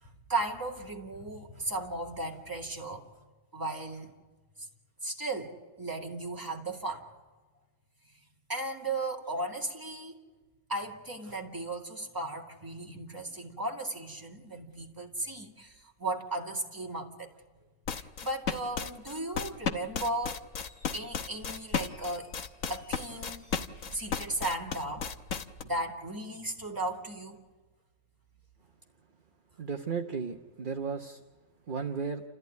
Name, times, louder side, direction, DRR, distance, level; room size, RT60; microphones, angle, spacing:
voice 1, 0.0-3.1 3.5-4.1 4.6-4.7 5.0-7.1 8.5-10.1 10.7-17.3 18.0-20.4 20.9-22.3 22.7-23.6 23.9-25.1 25.6-27.4, right 2 dB, 15° right, 2.2 m, -36 dB
sound 1, 17.9-25.6, left 7 dB, 55° left, 1.3 m, -33 dB
Squeak, 20.5-25.2, right 1 dB, 80° left, 7.8 m, -58 dB
voice 2, 29.6-31.2 31.7-32.2, right 5 dB, 40° right, 1.0 m, -34 dB
29.0 x 14.5 x 9.4 m
omnidirectional pair, 1.7 m